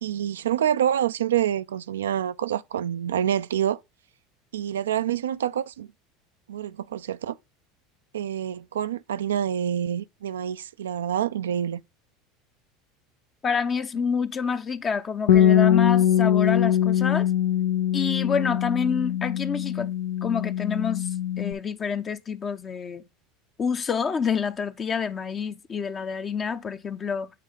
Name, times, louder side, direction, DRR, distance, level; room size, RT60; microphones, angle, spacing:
voice 1, 0.0-3.8 4.5-5.9 6.5-7.4 8.1-11.8, right 10 dB, 85° right, 0.4 m, -27 dB
voice 2, 13.4-17.3 17.9-19.9 20.2-23.0 23.6-27.3, left 6 dB, 35° left, 0.8 m, -28 dB
Bass guitar, 15.3-21.5, left 10 dB, 80° left, 0.8 m, -22 dB
8.4 x 3.7 x 5.0 m
hypercardioid pair, 80°, 0 cm